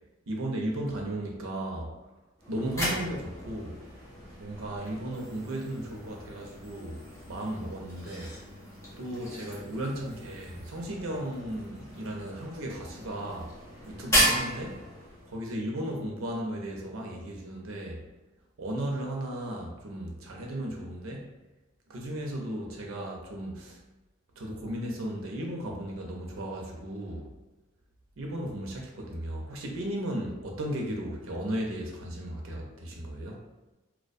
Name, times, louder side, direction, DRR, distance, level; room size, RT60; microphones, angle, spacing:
voice 1, 0.3-1.9 2.5-3.8 4.4-8.4 9.0-13.5 13.9-14.8 15.3-18.0 18.6-21.4 21.9-23.8 24.4-27.3 28.2-33.4, right 1 dB, 85° right, 0 dB, 0.5 m, -35 dB
sound 1, 2.4-15.4, equal, 15° left, 0.8 m, -35 dB
2.4 x 2.1 x 2.5 m, 1.1 s
head